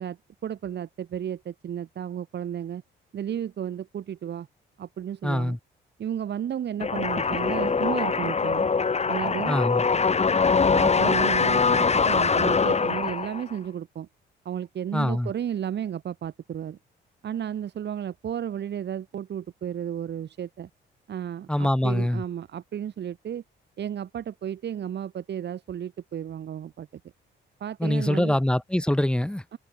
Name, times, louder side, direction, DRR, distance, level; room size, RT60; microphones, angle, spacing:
voice 1, 0.0-2.8 3.1-4.5 4.8-5.6 6.0-8.7 9.1-9.6 10.7-14.1 14.4-16.8 17.2-20.7 21.1-23.4 23.8-26.9 27.6-28.4 29.5-29.6, right 9 dB, 60° right, 2.9 m, -33 dB
voice 2, 5.2-5.6 9.4-9.8 14.9-15.3 21.5-22.2 27.8-29.4, left 1 dB, 5° left, 1.6 m, -24 dB
sound 1, 6.8-13.6, left 5 dB, 35° left, 4.0 m, -23 dB
cardioid pair, 90°, 20 cm